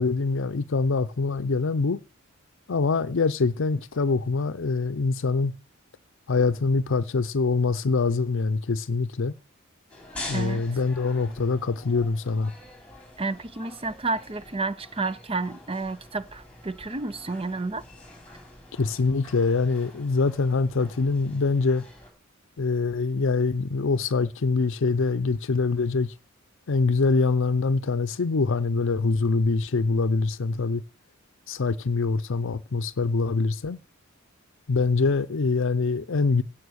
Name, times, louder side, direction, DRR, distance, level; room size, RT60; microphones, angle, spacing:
voice 1, 0.0-2.0 2.7-5.5 6.3-9.3 10.3-12.5 18.8-21.8 22.6-26.1 26.7-30.8 31.5-33.8 34.7-36.4, left 4 dB, 65° left, 0.6 m, -24 dB
sound 1, 9.9-22.1, left 2 dB, 5° left, 3.8 m, -45 dB
voice 2, 13.2-17.8, right 3 dB, 25° right, 0.6 m, -30 dB
16.5 x 5.9 x 6.3 m
head